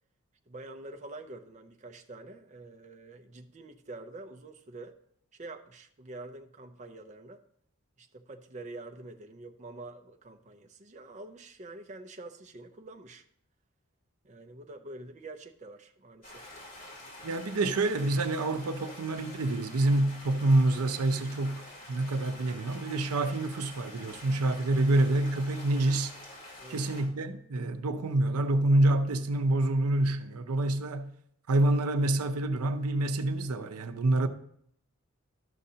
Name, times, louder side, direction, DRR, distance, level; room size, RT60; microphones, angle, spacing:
voice 1, 0.5-5.0 5.3-7.4 8.0-13.2 14.2-16.5 26.6-26.9, right 2 dB, 35° right, 0.5 m, -46 dB
Stream, 16.2-27.0, left 1 dB, 35° left, 3.2 m, -47 dB
voice 2, 17.2-21.6 21.9-26.1 26.7-31.1 31.5-34.3, right 2 dB, 90° right, 0.6 m, -27 dB
12.5 x 6.5 x 2.8 m
head